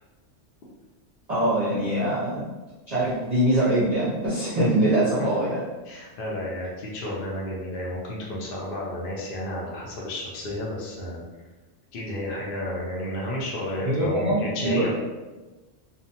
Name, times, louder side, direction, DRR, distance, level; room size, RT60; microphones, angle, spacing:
voice 1, 1.3-2.5 2.9-5.6 13.8-14.9, right 1 dB, 45° right, -10 dB, 0.6 m, -23 dB
voice 2, 5.9-11.2 11.9-14.9, left 1 dB, 55° left, -4 dB, 0.8 m, -32 dB
2.5 x 2.1 x 2.8 m, 1.2 s
omnidirectional pair, 1.2 m